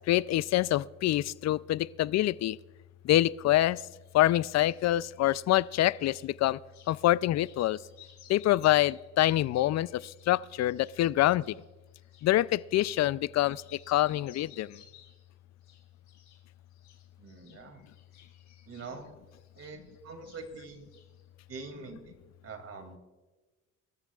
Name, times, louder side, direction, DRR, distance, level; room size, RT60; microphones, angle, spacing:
voice 1, 0.1-2.6 3.0-3.8 4.1-6.6 6.9-7.8 8.3-11.4 12.2-13.6 13.9-14.7, left 14 dB, 60° left, 19 dB, 0.4 m, -26 dB
sound 1, 4.0-6.3 6.7-7.0 7.3-13.2 13.4-15.3 15.6-16.4 16.7-20.0 20.2-21.2, left 9 dB, 80° left, 3.3 m, -58 dB
voice 2, 17.2-17.8 18.7-19.1 19.5-20.9 21.5-22.2 22.4-23.0, right 4 dB, 55° right, 6 dB, 2.5 m, -44 dB
25.5 x 13.5 x 2.4 m, 1.2 s
cardioid pair, 90°, 30 cm